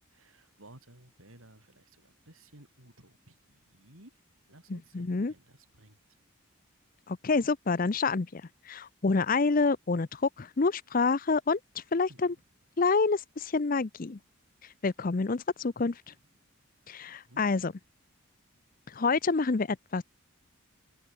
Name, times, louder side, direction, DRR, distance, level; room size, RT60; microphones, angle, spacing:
voice 1, 0.0-4.2 4.5-6.0 12.1-12.4 17.2-17.4, right 1 dB, 70° right, 5.9 m, -56 dB
voice 2, 4.7-5.3 7.1-12.3 12.8-14.2 14.8-16.1 16.9-17.7 18.9-20.0, left 4 dB, 40° left, 0.5 m, -28 dB
head